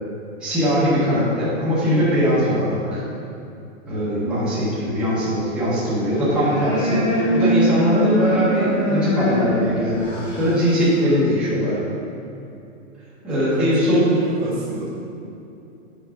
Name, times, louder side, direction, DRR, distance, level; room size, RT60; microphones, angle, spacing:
voice 1, 0.4-3.0 3.9-10.1 10.4-11.8 13.2-14.0, equal, ahead, -12 dB, 0.9 m, -20 dB
sound 1, 6.0-11.2, equal, 30° left, 1.3 m, -23 dB
voice 2, 13.3-14.9, right 2 dB, 35° right, -4 dB, 0.9 m, -28 dB
6.0 x 4.7 x 4.4 m, 2.8 s
hypercardioid pair, 165°, 41 cm